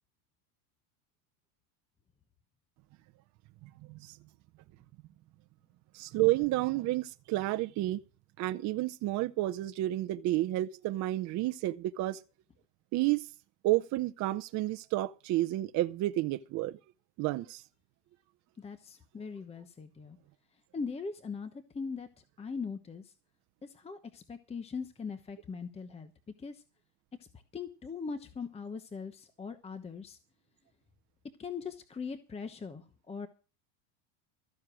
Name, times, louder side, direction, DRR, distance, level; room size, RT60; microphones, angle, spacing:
voice 1, 3.6-4.2 5.9-8.0 8.4-12.2 12.9-13.3 13.6-16.8 17.2-17.6, right 16 dB, 40° right, 0.7 m, -31 dB
voice 2, 18.6-20.2 20.7-22.1 22.4-23.0 23.6-26.1 26.4-26.6 27.5-30.2 31.4-33.3, left 5 dB, 15° left, 1.0 m, -40 dB
14.0 x 9.7 x 6.2 m
supercardioid pair, 130°, 46 cm